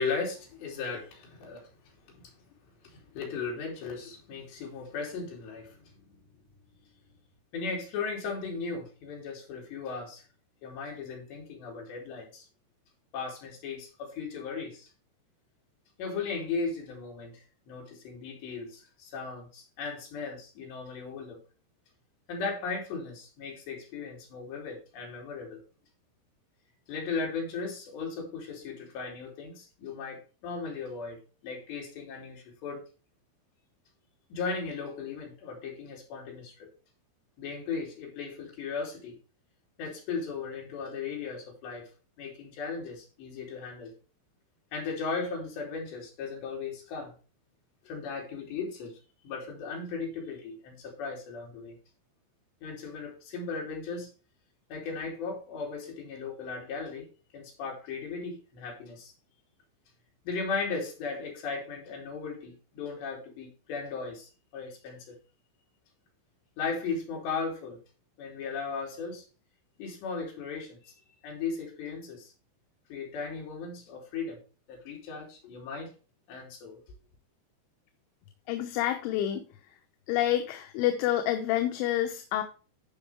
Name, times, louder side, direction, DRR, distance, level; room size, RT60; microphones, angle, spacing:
voice 1, 0.0-1.7 2.2-2.3 2.8-6.0 7.5-10.2 10.6-12.5 13.1-14.9 16.0-21.4 22.3-25.6 26.9-32.9 34.3-36.7 37.4-39.2 39.8-41.9 42.2-44.0 44.7-47.1 47.9-49.0 49.2-51.8 52.6-54.1 54.7-59.1 60.3-65.2 66.6-67.8 68.2-69.3 69.8-70.9 71.2-72.3 72.9-74.4 74.7-75.9 76.3-76.8, left 4 dB, 65° left, 5.3 m, -37 dB
voice 2, 78.5-79.5 80.1-82.4, left 12 dB, 85° left, 3.3 m, -28 dB
14.5 x 5.5 x 3.5 m
omnidirectional pair, 5.4 m